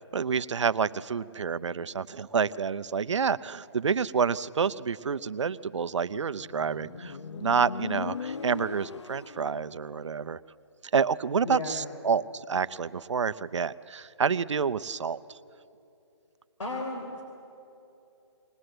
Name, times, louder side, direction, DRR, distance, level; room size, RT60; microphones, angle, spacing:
voice 1, 0.1-10.4 10.9-15.2, right 6 dB, 75° right, 15 dB, 0.6 m, -28 dB
Motorcycle, 6.1-9.6, left 5 dB, 70° left, 0.9 m, -39 dB
voice 2, 11.4-11.9 16.6-17.2, left 2 dB, 90° left, 0 dB, 3.7 m, -35 dB
20.5 x 19.0 x 7.8 m, 2.8 s
hypercardioid pair, 175°, 15 cm